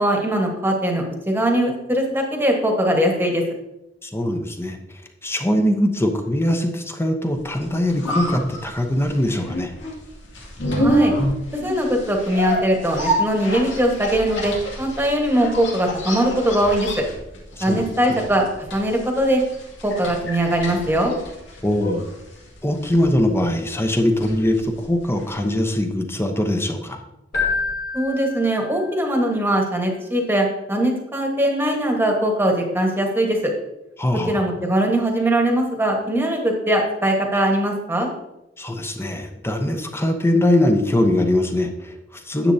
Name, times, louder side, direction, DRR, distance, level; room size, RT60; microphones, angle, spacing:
voice 1, 0.0-3.4 10.7-11.1 11.5-17.0 17.6-18.4 18.7-19.4 19.8-21.1 27.9-33.5 34.3-38.1, right 1 dB, 10° right, 1 dB, 1.3 m, -21 dB
voice 2, 4.0-4.8 5.2-9.7 17.6-18.2 21.6-22.1 22.6-27.0 34.0-34.4 38.6-42.5, left 1 dB, 15° left, 4 dB, 0.8 m, -22 dB
sound 1, 7.5-25.5 25.8-25.9, equal, 90° left, 2.2 m, -28 dB
Keyboard (musical), 27.3-29.2, left 4 dB, 50° left, 2.0 m, -27 dB
9.9 x 7.5 x 2.7 m, 0.91 s
head